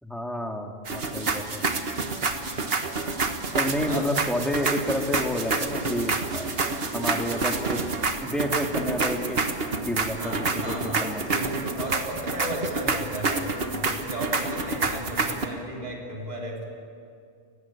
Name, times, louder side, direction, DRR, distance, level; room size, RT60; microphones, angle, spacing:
voice 1, 0.0-1.7 3.5-6.5 6.9-7.8 8.2-9.4 9.8-11.5, equal, ahead, 2 dB, 2.0 m, -30 dB
sound 1, 0.8-15.5, right 3 dB, 50° right, 1.7 m, -28 dB
voice 2, 2.7-3.3 3.9-4.1 10.2-16.6, right 1 dB, 35° right, -2 dB, 3.8 m, -35 dB
29.5 x 16.0 x 8.5 m, 2.4 s
omnidirectional pair, 1.3 m